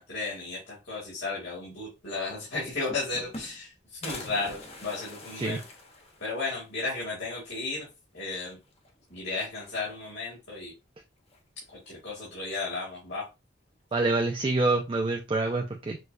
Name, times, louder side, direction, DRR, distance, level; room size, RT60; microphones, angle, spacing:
voice 1, 0.0-3.7 4.0-5.6 6.2-7.9 8.1-8.6 9.1-10.7 11.9-13.2, left 3 dB, 75° left, -6 dB, 2.0 m, -34 dB
sound 1, 2.0-2.1 2.4-3.7 4.0-6.6 7.0-7.1 7.4-7.5 8.6-9.1 9.5-10.2 11.3-11.8, left 2 dB, 35° left, 0.9 m, -44 dB
voice 2, 13.9-16.0, right 2 dB, 30° right, 3 dB, 0.4 m, -26 dB
6.2 x 2.3 x 2.6 m, 0.25 s
head